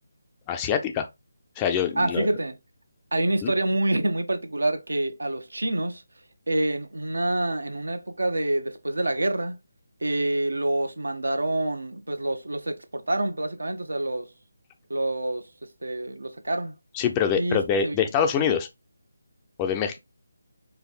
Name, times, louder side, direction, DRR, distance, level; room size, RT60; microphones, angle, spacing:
voice 1, 0.5-1.1 1.6-2.3 3.4-3.5 17.0-18.7 19.6-20.0, left 7 dB, 20° left, 0.5 m, -24 dB
voice 2, 1.9-2.6 3.1-6.0 6.5-9.6 10.0-14.3 14.9-15.5 15.8-16.7 17.4-18.0, right 1 dB, 80° right, 1.0 m, -27 dB
4.6 x 2.6 x 4.0 m
figure-of-eight pair, 155°, 0 cm